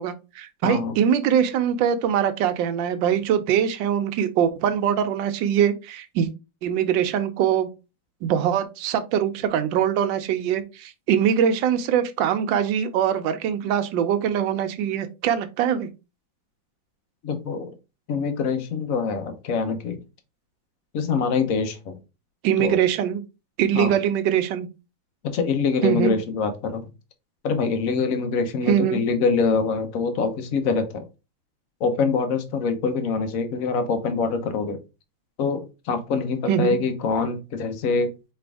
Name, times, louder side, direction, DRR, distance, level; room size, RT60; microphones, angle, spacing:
voice 1, 0.0-6.3 6.6-7.7 8.2-15.9 22.4-23.2 23.6-24.7 25.8-26.1 28.7-29.0 36.5-36.7, right 9 dB, 75° right, 9 dB, 1.3 m, -22 dB
voice 2, 0.6-0.9 17.2-17.7 18.1-20.0 20.9-22.0 22.6-22.8 23.7-23.9 25.2-26.9 27.4-31.0 31.8-34.8 35.4-38.1, left 5 dB, 55° left, 7 dB, 1.0 m, -24 dB
4.5 x 3.4 x 3.4 m, 0.28 s
omnidirectional pair, 2.2 m